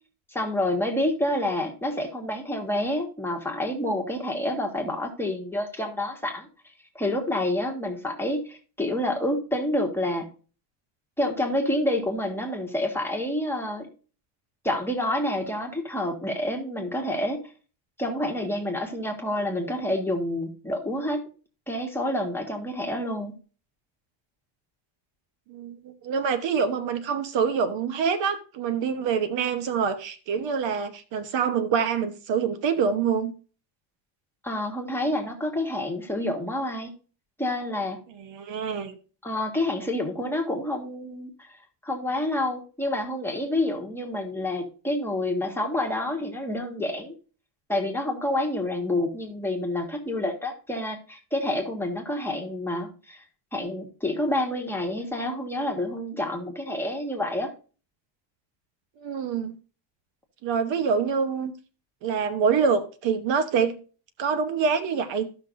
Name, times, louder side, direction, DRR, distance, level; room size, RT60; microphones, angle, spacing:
voice 1, 0.3-6.5 6.9-10.3 11.2-13.9 14.6-17.4 18.0-21.2 21.7-23.3 34.4-36.9 37.4-38.0 39.2-41.6 41.8-47.1 47.7-53.2 53.5-57.5, left 1 dB, 5° left, 1.5 m, -28 dB
voice 2, 25.5-33.3 38.2-39.0 59.0-59.6 60.4-61.5 62.0-63.8 64.2-65.3, right 6 dB, 60° right, 1.1 m, -26 dB
15.0 x 5.9 x 2.6 m
cardioid pair, 155°, 49 cm